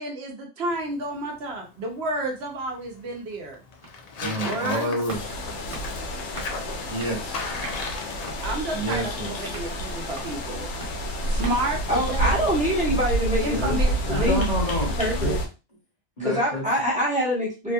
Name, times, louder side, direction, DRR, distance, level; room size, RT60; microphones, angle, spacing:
voice 1, 0.0-3.6 4.2-4.9 8.4-10.7 11.3-12.6 13.4-14.4, right 2 dB, 70° right, 2 dB, 0.8 m, -31 dB
Tearing, 0.7-12.9, left 4 dB, 60° left, 0.4 m, -40 dB
sound 1, 3.8-13.0 13.3-13.4, right 2 dB, 30° right, 0.9 m, -45 dB
voice 2, 4.2-5.3 6.9-7.5 8.7-9.3 13.5-13.7 14.1-15.3 16.2-16.6, equal, 35° left, -4 dB, 1.2 m, -29 dB
sound 2, 5.1-15.5, right 1 dB, 80° left, 0.9 m, -29 dB
voice 3, 11.9-13.6 14.1-14.5 15.0-15.4 16.2-17.7, equal, 5° right, -5 dB, 0.9 m, -24 dB
2.7 x 2.6 x 2.2 m, 0.30 s
omnidirectional pair, 1.2 m